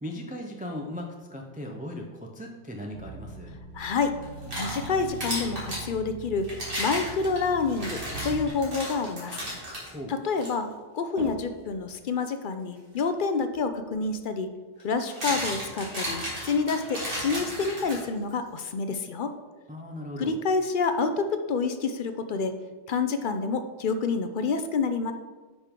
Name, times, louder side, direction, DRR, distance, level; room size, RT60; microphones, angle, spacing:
voice 1, 0.0-3.6 9.9-10.1 19.7-20.3, left 1 dB, 10° right, 1 dB, 0.5 m, -37 dB
sound 1, 2.9-8.5, right 3 dB, 75° right, 1.1 m, -41 dB
voice 2, 3.7-4.1 4.6-6.5 6.8-9.4 10.1-10.7 10.9-14.5 14.8-19.3 20.2-22.6 22.9-25.1, left 4 dB, 55° left, 9 dB, 0.7 m, -28 dB
sound 2, 4.2-5.9 6.4-9.9 10.4-10.5 11.2-11.4 13.5-13.6 14.8-18.3, equal, 50° right, 2.6 m, -34 dB
9.2 x 5.2 x 3.7 m, 1.3 s
omnidirectional pair, 1.2 m